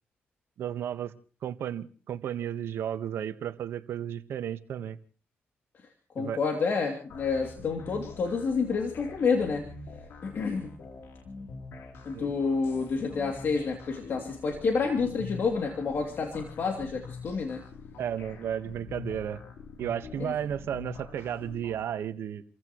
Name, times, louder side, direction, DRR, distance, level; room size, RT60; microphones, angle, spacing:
voice 1, 0.6-1.1 1.4-5.0 6.2-6.4 12.1-12.3 18.0-19.4 19.8-22.4, right 9 dB, 75° right, 1.2 m, -33 dB
voice 2, 6.1-9.7 10.2-10.7 12.0-17.6 20.2-20.3, left 5 dB, 55° left, 2.7 m, -29 dB
sound 1, 7.1-21.9, left 4 dB, 75° left, 3.3 m, -45 dB
30.0 x 15.0 x 3.1 m
cardioid pair, 85°, 4 cm